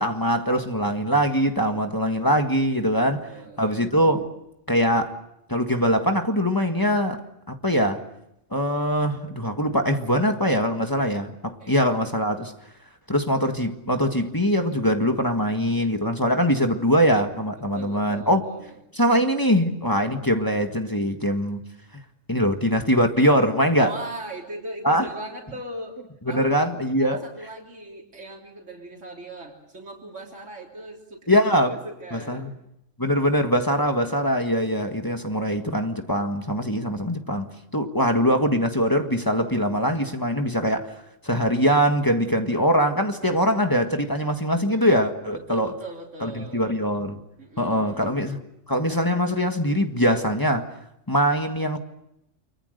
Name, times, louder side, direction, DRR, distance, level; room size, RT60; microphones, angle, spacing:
voice 1, 0.0-3.3 3.6-4.3 4.7-5.1 5.5-7.2 7.5-8.0 8.5-12.5 13.1-18.4 19.0-21.6 22.3-23.9 24.8-25.1 26.3-27.2 31.3-31.7 32.1-32.5 33.0-40.9 41.2-45.7 46.2-47.2 47.6-48.4 48.7-50.7 51.1-51.8, equal, 15° left, 1.7 m, -22 dB
voice 2, 3.2-3.9 11.6-11.7 17.6-18.8 23.8-26.0 26.2-32.5 45.3-46.7 47.4-48.1, right 1 dB, 70° right, 3.8 m, -39 dB
29.5 x 24.0 x 6.6 m
omnidirectional pair, 1.3 m